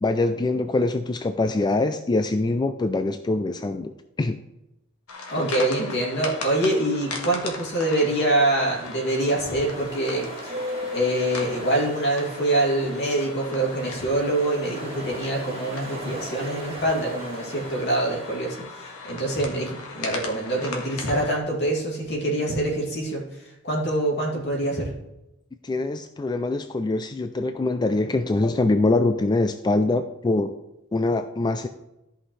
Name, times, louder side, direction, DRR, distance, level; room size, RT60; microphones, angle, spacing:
voice 1, 0.0-4.4 25.6-30.5 30.9-31.7, left 2 dB, 20° left, 9 dB, 0.3 m, -24 dB
sound 1, 5.1-21.4, left 3 dB, 80° left, 1.6 m, -39 dB
voice 2, 5.3-24.9, right 1 dB, 55° left, -3 dB, 2.6 m, -25 dB
Ocean, 7.9-19.0, equal, 30° right, 2.0 m, -38 dB
14.0 x 5.7 x 3.2 m, 0.93 s
head